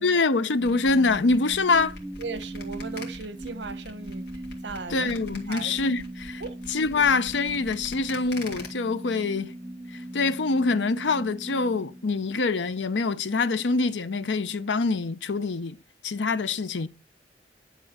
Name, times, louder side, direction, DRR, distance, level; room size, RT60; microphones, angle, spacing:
voice 1, 0.0-1.9 4.9-6.4 6.7-9.5 9.9-15.8 16.0-16.9, left 3 dB, 90° left, 0.7 m, -25 dB
sound 1, 0.6-8.7, left 3 dB, 65° left, 2.3 m, -43 dB
sound 2, 0.6-12.7, right 1 dB, 10° right, 0.6 m, -39 dB
voice 2, 2.2-5.1 5.5-5.7 6.4-6.6, right 4 dB, 80° right, 1.0 m, -37 dB
10.5 x 3.7 x 7.3 m
head